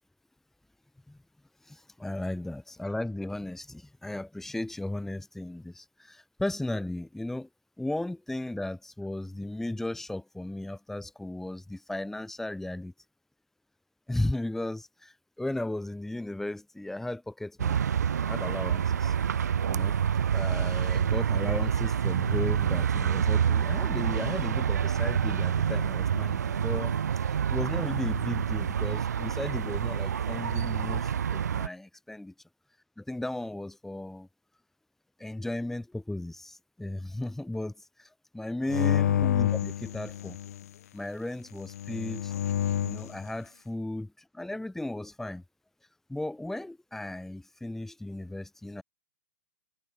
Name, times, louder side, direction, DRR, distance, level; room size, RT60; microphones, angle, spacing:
voice 1, 1.6-7.5 7.8-12.9 14.1-17.8 18.2-18.8 19.7-20.0 20.3-32.3 33.0-34.3 35.2-40.4 40.9-42.3 42.8-44.1 44.3-45.4 46.1-48.8, left 1 dB, 5° left, 3.3 m, -35 dB
sound 1, 17.6-31.7, right 8 dB, 75° right, 0.7 m, -27 dB
sound 2, 38.7-40.6 41.6-43.1, left 11 dB, 65° left, 1.0 m, -28 dB
hypercardioid pair, 115°, 9 cm